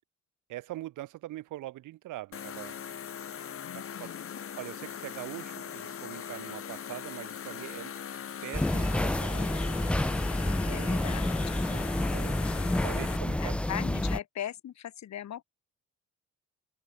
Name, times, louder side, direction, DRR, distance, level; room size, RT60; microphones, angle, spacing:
voice 1, 0.5-2.8 4.0-4.1 4.6-7.9 8.4-9.6 10.5-11.0 11.7-12.4 12.8-13.6, right 16 dB, 90° right, 4.1 m, -42 dB
sound 1, 2.3-13.2, left 8 dB, 45° left, 1.6 m, -40 dB
voice 2, 3.6-4.4 10.7-11.3 13.4-15.4, left 10 dB, 65° left, 3.3 m, -39 dB
sound 2, 8.5-14.2, left 1 dB, 5° left, 0.3 m, -29 dB
cardioid pair, 90°, 30 cm